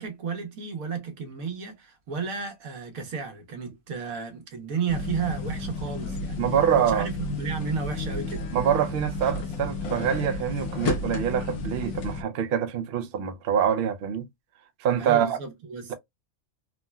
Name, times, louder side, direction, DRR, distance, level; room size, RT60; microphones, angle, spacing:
voice 1, 0.0-6.4 6.7-8.5 15.0-15.9, right 5 dB, 80° right, 1.3 m, -33 dB
sound 1, 4.9-12.2, left 3 dB, 85° left, 1.1 m, -32 dB
voice 2, 6.4-7.1 8.5-14.3 14.8-15.4, right 8 dB, 65° right, 0.5 m, -25 dB
3.5 x 2.1 x 2.2 m
omnidirectional pair, 1.5 m